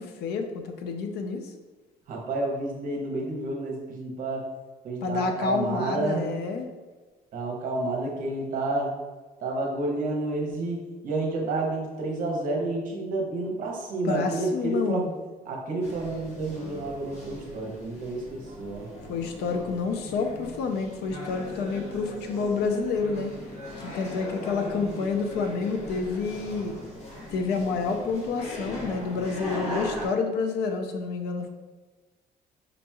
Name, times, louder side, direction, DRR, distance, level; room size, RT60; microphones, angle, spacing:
voice 1, 0.0-1.5 5.0-6.7 14.0-15.1 19.1-23.3 23.8-26.8 27.3-31.5, left 4 dB, 80° left, 5 dB, 0.5 m, -29 dB
voice 2, 2.1-4.5 4.8-6.2 7.3-9.0 9.4-15.1 15.4-18.9, right 2 dB, 55° right, 0 dB, 0.8 m, -30 dB
sound 1, 15.8-30.1, left 1 dB, 40° left, 0.9 m, -39 dB
5.1 x 2.9 x 2.3 m, 1.3 s
cardioid pair, 170°, 17 cm